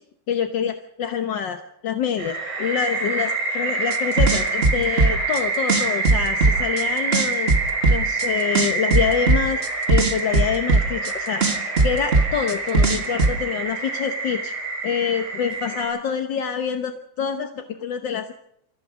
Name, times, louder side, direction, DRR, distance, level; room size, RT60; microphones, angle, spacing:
voice 1, 0.3-1.6 1.8-7.5 7.9-11.4 11.8-14.5 14.8-18.3, left 7 dB, 60° left, 6 dB, 1.2 m, -26 dB
sound 1, 2.2-15.8, right 3 dB, 80° right, 9.3 m, -27 dB
sound 2, 3.9-5.4 5.7-6.8 7.1-8.3 8.6-11.1 11.4-13.3, right 3 dB, 30° right, 1.2 m, -18 dB
28.0 x 15.5 x 6.3 m, 0.75 s
omnidirectional pair, 3.3 m